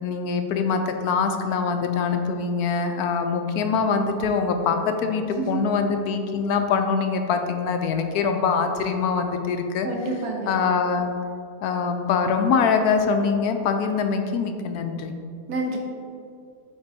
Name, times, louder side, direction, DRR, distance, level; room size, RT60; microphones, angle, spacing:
voice 1, 0.0-9.9 10.5-11.1 11.6-15.1, left 5 dB, 75° left, 6 dB, 1.1 m, -23 dB
voice 2, 5.2-5.6 9.8-10.6 15.5-15.8, right 3 dB, 75° right, 0 dB, 1.5 m, -28 dB
8.8 x 4.1 x 4.0 m, 2.3 s
omnidirectional pair, 1.7 m